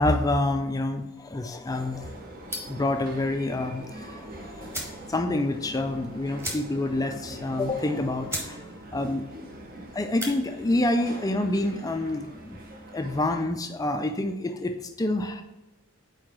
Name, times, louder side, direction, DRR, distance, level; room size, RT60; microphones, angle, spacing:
voice 1, 0.0-2.1 2.7-8.6 8.9-9.3 9.9-12.6 12.9-15.4, left 2 dB, 15° left, 6 dB, 0.4 m, -27 dB
sound 1, 1.7-13.4, right 1 dB, 40° right, 0.9 m, -43 dB
sound 2, 2.5-2.9 4.2-4.3 4.7-5.0 5.4-5.5 5.7-5.9 6.4-7.0 7.3-7.4 7.9-8.0 8.3-8.5 8.9-9.2 10.0-10.4, equal, 10° right, 1.3 m, -35 dB
4.8 x 4.5 x 6.0 m, 0.99 s
head